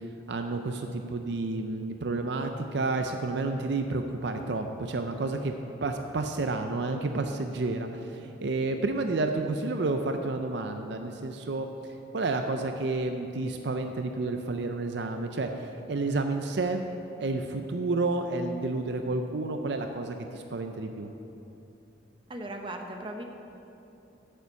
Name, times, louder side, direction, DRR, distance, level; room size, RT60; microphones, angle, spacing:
voice 1, 0.3-5.5 5.8-11.7 12.1-15.5 15.9-16.9 17.2-21.1, right 3 dB, 60° right, 5 dB, 0.5 m, -30 dB
voice 2, 22.3-23.2, right 1 dB, 25° right, 3 dB, 0.7 m, -37 dB
9.1 x 6.8 x 7.0 m, 2.9 s
head